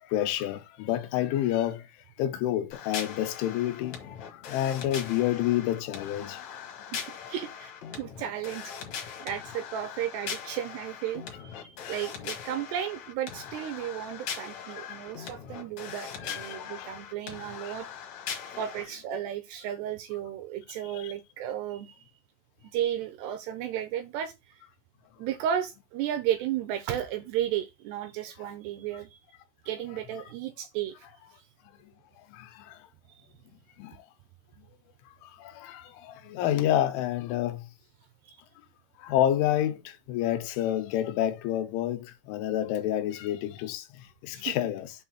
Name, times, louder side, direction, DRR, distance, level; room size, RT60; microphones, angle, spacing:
voice 1, 0.0-1.9 2.2-6.7 11.6-12.0 14.8-15.3 16.0-17.0 17.6-17.7 20.9-21.1 31.8-31.9 32.2-32.9 33.8-34.1 34.6-34.7 35.2-37.7 39.0-44.9, left 12 dB, 90° left, 3.3 m, -29 dB
sound 1, 2.7-18.8, left 7 dB, 75° left, 1.6 m, -40 dB
voice 2, 7.3-8.7 9.2-17.9 18.5-22.0 22.7-24.6 25.2-29.2 29.7-31.0 33.1-33.2 38.3-38.4 44.3-44.5, right 10 dB, 80° right, 2.5 m, -34 dB
7.6 x 2.6 x 5.8 m
omnidirectional pair, 5.3 m